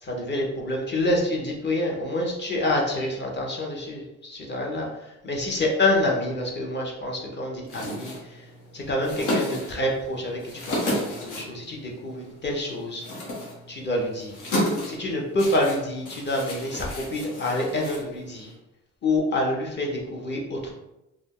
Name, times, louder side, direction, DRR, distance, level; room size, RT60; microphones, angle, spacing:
voice 1, 0.0-8.4 8.7-10.4 10.7-13.0 13.7-14.3 14.9-18.5 19.0-20.7, left 1 dB, 35° left, -1 dB, 0.9 m, -27 dB
sound 1, 7.6-18.6, left 1 dB, 85° left, 1.0 m, -33 dB
2.6 x 2.1 x 3.6 m, 0.92 s
cardioid pair, 90°, 30 cm